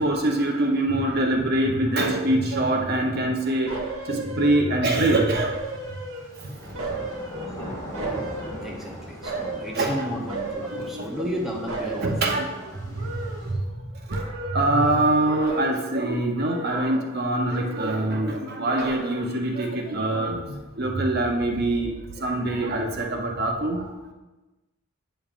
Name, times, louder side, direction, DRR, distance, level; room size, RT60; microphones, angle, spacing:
voice 1, 0.0-5.5 6.4-6.5 9.3-9.5 9.7-10.1 10.7-11.1 12.0-12.5 12.8-13.6 14.1-14.2 14.5-21.9 22.2-23.9, right 1 dB, 50° right, 2 dB, 0.7 m, -24 dB
sound 1, 3.7-4.9 5.3-6.4 6.7-8.9 9.2-9.8 10.3-11.4 11.7-13.8 14.1-14.8 15.2-16.0 16.3-17.2 17.5-18.2 18.6-19.4 19.8-19.9, right 2 dB, 80° right, 1.1 m, -35 dB
sound 2, 5.5-13.5, equal, 20° left, 2.0 m, -40 dB
voice 2, 8.6-12.4 23.4-23.5, equal, ahead, -3 dB, 0.7 m, -33 dB
8.5 x 5.2 x 2.5 m, 1.1 s
head